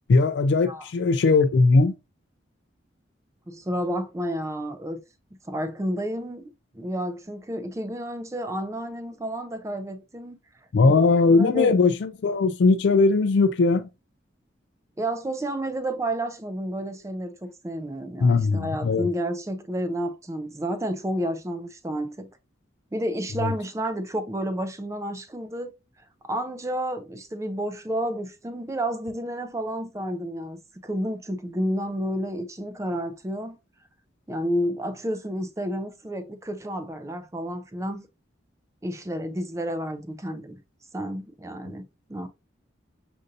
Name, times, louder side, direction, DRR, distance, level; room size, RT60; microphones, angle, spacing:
voice 1, 0.1-1.9 10.7-13.9 18.2-19.1 23.4-23.5, left 3 dB, 65° left, 0.4 m, -19 dB
voice 2, 3.5-5.0 5.5-6.5 6.7-10.4 10.9-11.7 15.0-22.3 22.9-25.7 26.2-33.6 34.3-38.0 38.8-40.6 40.9-41.8 42.1-42.3, equal, 15° right, 0.4 m, -30 dB
6.4 x 2.6 x 2.6 m
head